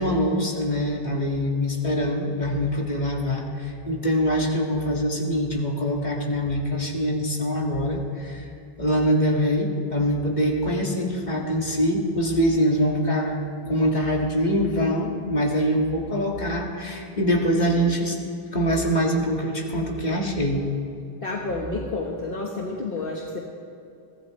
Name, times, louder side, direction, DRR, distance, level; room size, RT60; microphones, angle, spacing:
voice 1, 0.0-8.5 8.8-18.2 18.5-20.7 21.8-21.9, equal, 45° left, -1 dB, 2.1 m, -24 dB
voice 2, 21.2-23.4, left 3 dB, 60° left, -1 dB, 1.5 m, -30 dB
23.5 x 16.0 x 3.2 m, 2.7 s
omnidirectional pair, 1.0 m